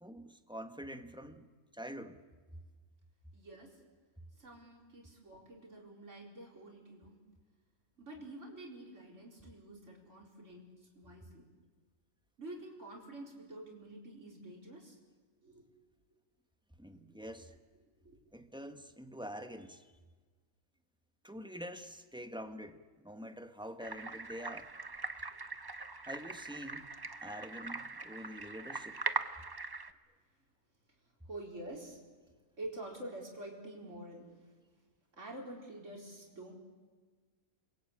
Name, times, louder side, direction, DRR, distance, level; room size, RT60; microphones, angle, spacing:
voice 1, 0.0-1.5 1.7-2.2 16.8-17.5 18.3-19.9 21.2-24.7 26.1-26.9 27.2-29.0, equal, 5° right, 7 dB, 1.2 m, -46 dB
voice 2, 3.3-3.7 4.4-7.1 8.0-10.7 10.9-11.4 12.4-15.0 15.4-15.7 18.0-18.2 31.2-32.0 32.6-34.3 35.2-36.5, right 1 dB, 55° right, -1 dB, 4.7 m, -48 dB
sound 1, 23.8-29.9, right 3 dB, 20° right, 0.7 m, -41 dB
29.0 x 22.5 x 8.6 m, 1.4 s
omnidirectional pair, 1.5 m